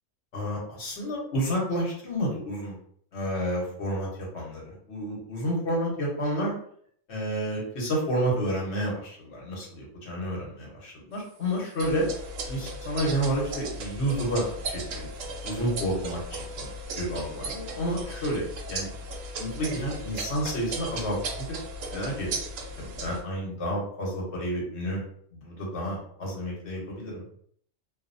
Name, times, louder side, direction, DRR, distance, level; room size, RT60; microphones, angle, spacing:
voice 1, 0.3-2.8 3.1-6.5 7.1-12.1 12.5-15.1 15.4-16.7 16.9-18.9 19.4-21.6 21.9-22.3 22.8-25.0 25.3-27.2, equal, 60° left, -3 dB, 1.1 m, -30 dB
sound 1, 11.8-23.2, right 2 dB, 80° right, 1.0 m, -36 dB
2.7 x 2.1 x 2.5 m, 0.63 s
omnidirectional pair, 1.4 m